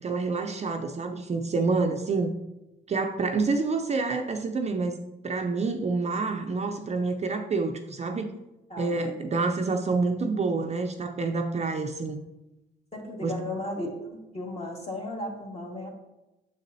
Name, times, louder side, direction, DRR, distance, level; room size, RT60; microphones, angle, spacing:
voice 1, 0.0-2.4 2.9-8.3 8.8-12.2 13.2-13.4, right 3 dB, 35° right, 5 dB, 0.5 m, -28 dB
voice 2, 8.7-9.2 12.9-15.9, left 1 dB, 30° left, 0 dB, 1.7 m, -35 dB
7.2 x 6.9 x 2.7 m, 0.98 s
cardioid pair, 90°, 20 cm